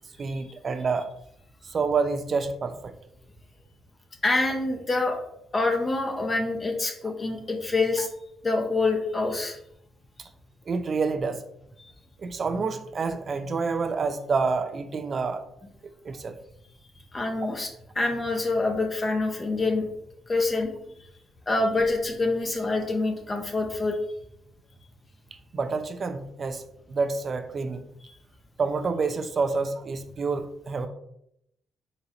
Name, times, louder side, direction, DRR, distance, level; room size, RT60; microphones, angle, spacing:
voice 1, 0.2-1.1 1.6-2.9 8.0-8.1 10.7-11.4 12.2-15.4 16.0-16.3 25.5-26.6 26.9-27.8 28.6-30.9, right 4 dB, 45° right, 8 dB, 0.4 m, -28 dB
voice 2, 4.2-5.2 5.5-8.1 8.4-9.6 17.1-17.7 18.0-19.9 20.3-20.7 21.5-24.0 28.0-28.1, left 3 dB, 30° left, 3 dB, 0.6 m, -26 dB
3.9 x 3.1 x 2.7 m, 0.76 s
cardioid pair, 90°, 0 cm